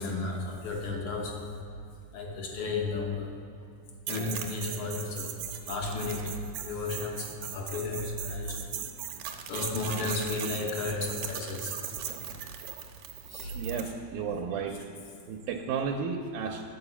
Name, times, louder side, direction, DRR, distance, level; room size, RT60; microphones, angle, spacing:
voice 1, 0.0-1.5 2.1-3.3 4.1-5.3 5.7-8.6 9.5-11.8 13.3-13.5 13.8-13.9, left 3 dB, 65° left, 1 dB, 1.5 m, -33 dB
sound 1, 4.1-13.9, right 9 dB, 75° right, 1.9 m, -39 dB
voice 2, 13.5-14.8 15.3-16.6, right 6 dB, 90° right, 2 dB, 2.1 m, -33 dB
10.5 x 4.9 x 7.0 m, 2.5 s
omnidirectional pair, 3.5 m